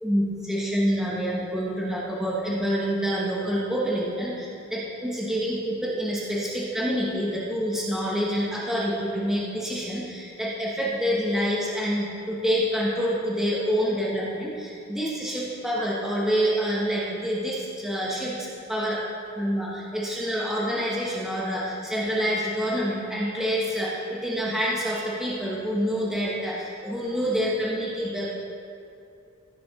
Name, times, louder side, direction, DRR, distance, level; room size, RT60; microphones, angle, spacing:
voice 1, 0.0-19.0 19.4-28.3, equal, ahead, -6 dB, 1.2 m, -27 dB
16.0 x 7.0 x 3.7 m, 2.6 s
head